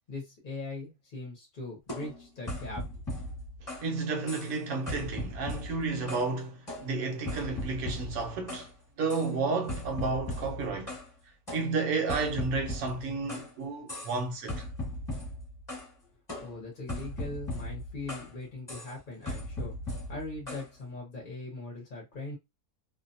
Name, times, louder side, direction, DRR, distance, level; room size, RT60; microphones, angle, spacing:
voice 1, 0.1-2.9 16.4-22.4, left 2 dB, 40° left, 0.8 m, -40 dB
sound 1, 1.9-3.9 4.3-4.6 4.9-6.3 6.7-8.7 9.1-9.3 9.7-11.1 11.5-13.5 13.9-14.2 14.5-15.9 16.3-18.3 18.7-18.9 19.3-20.7, left 1 dB, 15° left, 1.2 m, -38 dB
voice 2, 3.6-8.7 9.0-11.0 11.5-14.7, right 4 dB, 70° right, 1.0 m, -32 dB
2.6 x 2.2 x 2.6 m
omnidirectional pair, 1.6 m